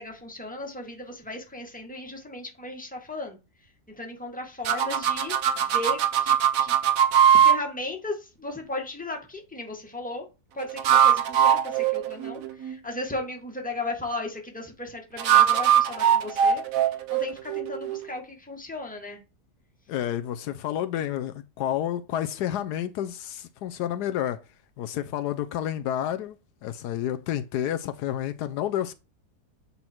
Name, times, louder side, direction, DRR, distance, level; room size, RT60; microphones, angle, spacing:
voice 1, 0.0-3.4 4.0-6.7 7.3-10.2 10.5-16.6 17.1-19.2, left 2 dB, 5° left, 1.5 m, -36 dB
sound 1, 4.7-7.6 10.6-12.8 15.2-18.1, right 9 dB, 60° right, 1.1 m, -21 dB
voice 2, 19.9-24.4 24.8-26.4 26.6-28.9, left 11 dB, 80° left, 1.1 m, -30 dB
8.4 x 4.1 x 4.4 m
omnidirectional pair, 1.7 m